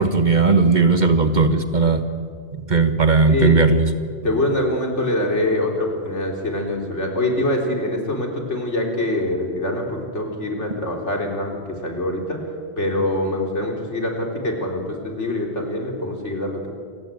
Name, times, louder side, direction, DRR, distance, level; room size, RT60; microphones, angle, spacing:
voice 1, 0.0-2.0 2.5-3.9, right 4 dB, 40° right, 9 dB, 1.5 m, -17 dB
voice 2, 4.2-12.4 12.8-16.7, left 1 dB, 85° left, 1 dB, 4.1 m, -24 dB
28.0 x 16.5 x 9.1 m, 2.1 s
omnidirectional pair, 1.2 m